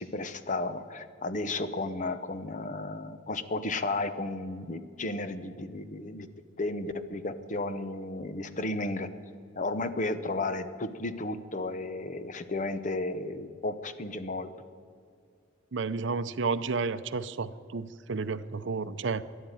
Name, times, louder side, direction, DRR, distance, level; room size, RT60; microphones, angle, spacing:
voice 1, 0.0-6.3 6.6-9.1 9.5-14.7, left 2 dB, 40° left, 11 dB, 0.8 m, -33 dB
voice 2, 15.7-19.2, right 4 dB, 65° right, 14 dB, 0.6 m, -31 dB
13.0 x 11.0 x 9.1 m, 2.3 s
head